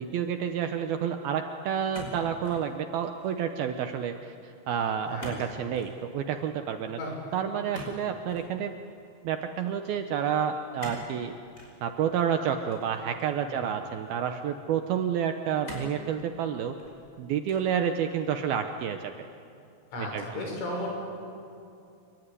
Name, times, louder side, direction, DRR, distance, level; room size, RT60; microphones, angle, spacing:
voice 1, 0.0-7.0 7.3-8.7 9.2-11.3 11.8-16.7 17.2-19.1 20.0-20.4, right 8 dB, 75° right, 6 dB, 2.3 m, -29 dB
sound 1, 1.9-2.7 3.0-3.5 5.2-5.5 5.7-6.0 7.7-8.5 10.8-11.1 11.5-11.7 12.7-13.5 14.2-14.3 15.6-16.0 16.6-17.1 17.5-17.8, equal, 15° left, 5.3 m, -43 dB
voice 2, 5.1-5.7 6.9-7.1 13.5-13.7 19.9-21.0, left 1 dB, 90° left, 0 dB, 8.6 m, -35 dB
26.0 x 23.5 x 9.8 m, 2.5 s
omnidirectional pair, 5.4 m